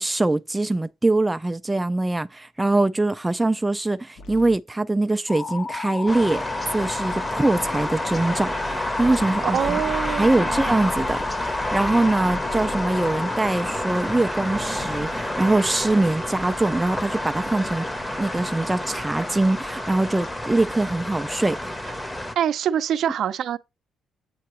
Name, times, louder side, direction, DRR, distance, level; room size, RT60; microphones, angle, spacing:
voice 1, 0.0-6.4 6.7-17.9 18.2-21.8, right 2 dB, 10° right, 0.3 m, -23 dB
sound 1, 4.2-4.6 6.5-7.9 9.2-9.9 11.9-13.2 14.5-15.2 17.2-18.6 19.9-20.0, left 2 dB, 75° left, 1.5 m, -44 dB
sound 2, 5.3-13.4, left 4 dB, 55° left, 1.0 m, -33 dB
sound 3, 6.1-22.3, left 1 dB, 10° left, 0.8 m, -29 dB
voice 2, 9.4-10.7 22.4-23.6, right 9 dB, 70° right, 0.5 m, -25 dB
7.7 x 4.6 x 3.1 m
cardioid pair, 90°, 0 cm